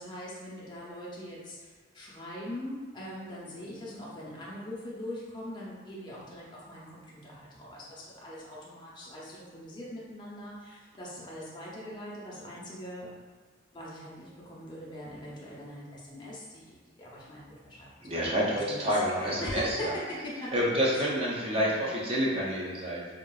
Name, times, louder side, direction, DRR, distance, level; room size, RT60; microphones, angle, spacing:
voice 1, 0.0-13.1 13.7-19.0 19.4-20.5 20.9-21.0 21.5-21.8, left 1 dB, 25° left, -6 dB, 0.6 m, -42 dB
voice 2, 18.0-19.9 20.5-23.1, equal, 30° right, -5 dB, 0.5 m, -28 dB
3.6 x 2.3 x 2.3 m, 1.4 s
head